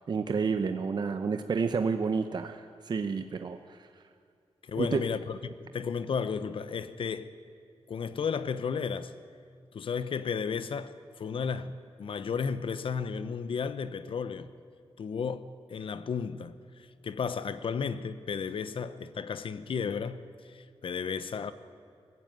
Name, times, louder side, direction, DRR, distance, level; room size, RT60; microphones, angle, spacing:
voice 1, 0.1-3.9 4.8-5.0, right 5 dB, 45° right, 0.7 m, -30 dB
voice 2, 4.6-7.3 7.9-9.1 9.7-14.5 15.0-21.5, left 6 dB, 60° left, 0.9 m, -34 dB
22.5 x 15.0 x 9.3 m
wide cardioid pair, 180°, 10 cm